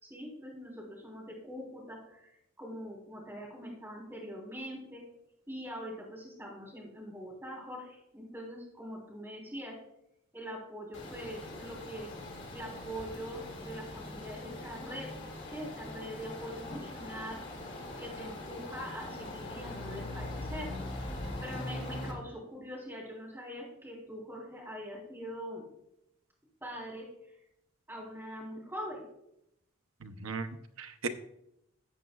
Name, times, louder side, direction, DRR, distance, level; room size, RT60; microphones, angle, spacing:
voice 1, 0.0-5.0 5.5-9.8 10.3-12.1 12.5-15.1 15.5-17.4 18.0-20.7 21.4-25.6 26.6-27.4 27.9-29.0, equal, 10° right, -4 dB, 3.4 m, -43 dB
sound 1, 10.9-22.1, left 1 dB, 55° left, 2.5 m, -42 dB
voice 2, 30.0-31.1, right 4 dB, 80° right, 8 dB, 0.8 m, -38 dB
13.5 x 8.3 x 2.3 m, 0.80 s
head